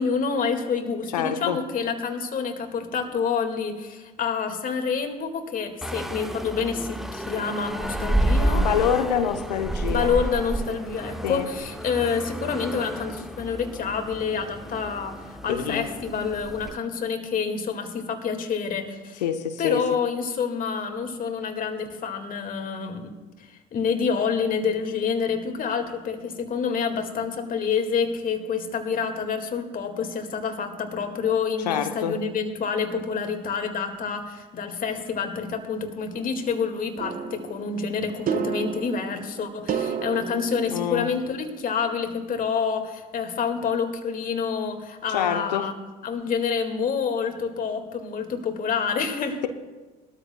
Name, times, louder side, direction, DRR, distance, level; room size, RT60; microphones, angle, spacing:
voice 1, 0.0-8.7 9.9-19.2 19.6-45.7 46.0-49.4, left 6 dB, 40° left, 1.9 m, -28 dB
voice 2, 1.1-1.6 8.5-10.1 11.2-11.5 15.5-15.9 19.2-19.8 31.7-32.2 40.7-41.1 45.1-45.7, left 9 dB, 80° left, 0.9 m, -26 dB
sound 1, 5.8-16.8, right 1 dB, ahead, 0.7 m, -30 dB
sound 2, 37.0-41.5, right 6 dB, 40° right, 1.1 m, -32 dB
21.0 x 13.0 x 2.2 m
hypercardioid pair, 65°, 21 cm